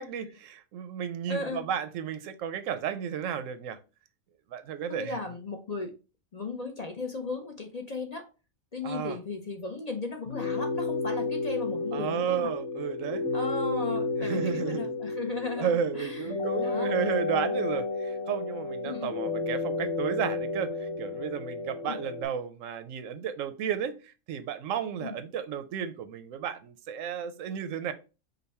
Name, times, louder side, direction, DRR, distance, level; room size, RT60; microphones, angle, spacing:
voice 1, 0.0-3.8 4.5-5.2 8.8-9.2 11.9-13.3 14.2-14.9 15.6-27.9, right 8 dB, 90° right, 1.0 m, -33 dB
voice 2, 1.3-1.7 4.9-5.9 6.3-8.3 8.7-12.5 13.3-16.3 16.6-16.9 18.8-19.1 21.9-22.0 25.0-25.2, left 3 dB, 40° left, 0.6 m, -36 dB
sound 1, 10.3-22.3, left 3 dB, 80° left, 1.2 m, -32 dB
5.2 x 2.2 x 4.1 m
omnidirectional pair, 1.3 m